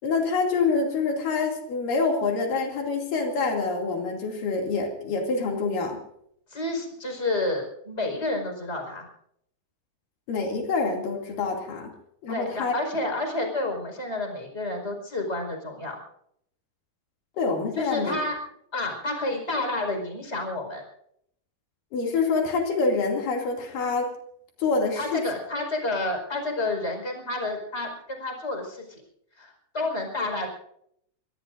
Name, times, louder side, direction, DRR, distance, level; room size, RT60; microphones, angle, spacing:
voice 1, 0.0-6.0 10.3-11.9 12.2-12.7 17.4-18.2 21.9-24.1 24.6-25.2, left 4 dB, 85° left, 1 dB, 4.4 m, -26 dB
voice 2, 6.5-9.1 12.3-16.0 17.8-18.4 18.7-20.8 25.0-29.0 29.4-30.5, left 2 dB, 20° left, 3 dB, 5.2 m, -30 dB
25.0 x 22.0 x 2.6 m, 0.70 s
omnidirectional pair, 3.8 m